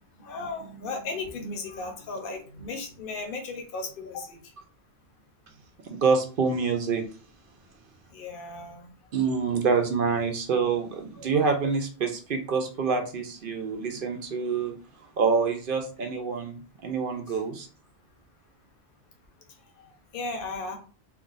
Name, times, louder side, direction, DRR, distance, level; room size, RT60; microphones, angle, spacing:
voice 1, 0.2-4.4 8.1-8.9 11.2-11.3 13.5-14.0 17.3-17.4 19.8-20.8, left 3 dB, 60° left, 3 dB, 0.9 m, -36 dB
voice 2, 5.9-7.1 9.1-14.7 15.2-17.7, right 5 dB, 60° right, 4 dB, 0.7 m, -26 dB
2.5 x 2.5 x 3.8 m, 0.37 s
omnidirectional pair, 1.1 m